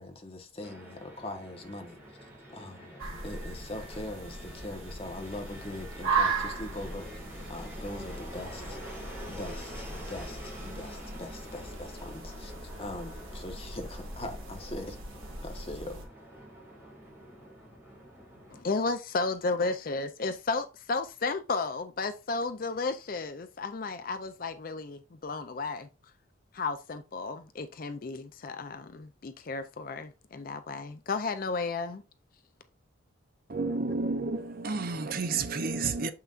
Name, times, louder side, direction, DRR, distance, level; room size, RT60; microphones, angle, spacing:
voice 1, 0.0-2.0 2.5-2.9 3.2-7.1 7.5-15.0 15.4-16.0, left 1 dB, 30° left, 1.1 m, -41 dB
Fixed-wing aircraft airplane, 0.6-18.6, equal, 10° right, 2.2 m, -47 dB
sound 1, 3.0-16.0, right 4 dB, 85° right, 2.0 m, -37 dB
voice 2, 18.5-25.9 26.5-32.0, left 3 dB, 45° left, 0.5 m, -33 dB
voice 3, 33.5-36.1, right 3 dB, 45° right, 0.6 m, -31 dB
7.0 x 5.7 x 2.5 m
head